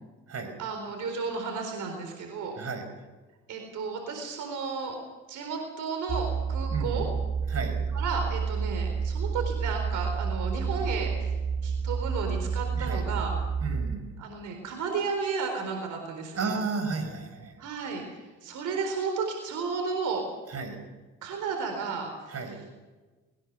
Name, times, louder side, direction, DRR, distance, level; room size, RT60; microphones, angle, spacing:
voice 1, 0.6-2.6 3.5-5.0 5.3-7.1 7.9-11.3 11.6-13.3 14.2-16.5 17.6-18.0 18.4-20.2 21.2-22.3, right 5 dB, 80° right, 3 dB, 4.2 m, -33 dB
voice 2, 2.6-2.9 6.7-7.1 7.5-7.8 12.7-13.0 13.6-14.0 16.3-17.6 20.5-20.8 22.3-22.6, right 4 dB, 55° right, 6 dB, 5.5 m, -33 dB
sound 1, 6.1-14.0, right 5 dB, 30° right, 1.2 m, -30 dB
21.5 x 19.0 x 6.8 m, 1.2 s
cardioid pair, 90°, 30 cm